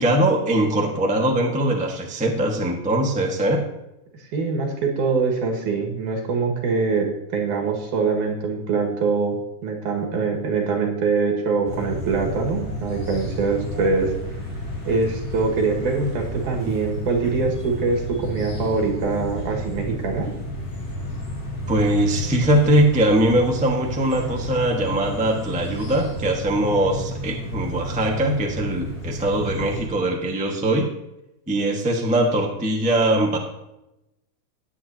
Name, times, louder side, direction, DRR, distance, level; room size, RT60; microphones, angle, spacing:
voice 1, 0.0-3.6 21.7-30.9 31.5-33.4, right 1 dB, 10° right, 0 dB, 0.5 m, -21 dB
voice 2, 4.3-9.4 9.6-14.1 14.9-20.3, right 4 dB, 85° right, 1 dB, 3.4 m, -23 dB
sound 1, 11.6-29.9, left 1 dB, 50° left, 4.0 m, -32 dB
19.0 x 8.3 x 2.9 m, 0.91 s
omnidirectional pair, 3.4 m